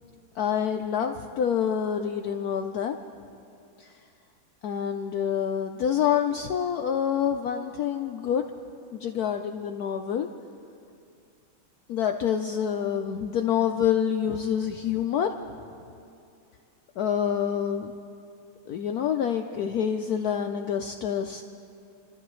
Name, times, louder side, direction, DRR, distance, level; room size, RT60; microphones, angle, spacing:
voice 1, 0.4-2.9 3.8-3.9 4.6-8.4 8.9-10.3 11.9-15.3 17.0-17.9 18.7-21.4, left 8 dB, 90° left, 5 dB, 0.8 m, -27 dB
30.0 x 13.0 x 3.1 m, 2.5 s
omnidirectional pair, 2.3 m